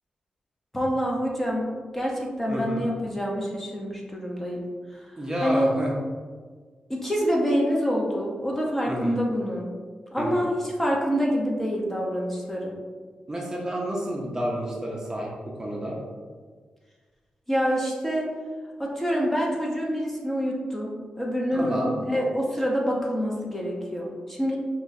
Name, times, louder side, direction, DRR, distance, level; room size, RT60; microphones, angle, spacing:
voice 1, 0.7-4.6 4.9-5.1 5.4-5.7 6.9-9.7 10.1-12.7 17.5-18.3 18.8-24.6, equal, 10° left, -3 dB, 0.8 m, -26 dB
voice 2, 2.5-2.8 5.2-5.9 8.9-9.2 10.2-10.4 13.3-15.3 15.6-16.0 21.5-21.9, equal, 25° right, -2 dB, 0.7 m, -30 dB
5.7 x 2.2 x 2.6 m, 1.5 s
cardioid pair, 95°, 2 cm